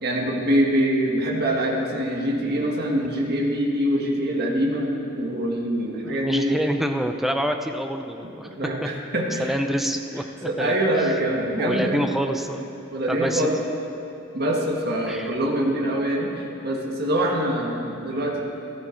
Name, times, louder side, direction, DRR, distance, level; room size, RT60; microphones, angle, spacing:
voice 1, 0.0-6.6 8.4-9.6 10.4-12.0 12.9-13.6 14.3-18.4, right 1 dB, 50° right, -1 dB, 1.7 m, -24 dB
voice 2, 6.0-8.5 8.8-8.9 9.4-10.8 11.6-12.6 13.1-13.5 15.1-15.3, equal, ahead, 5 dB, 0.6 m, -27 dB
14.5 x 12.5 x 4.5 m, 2.8 s
head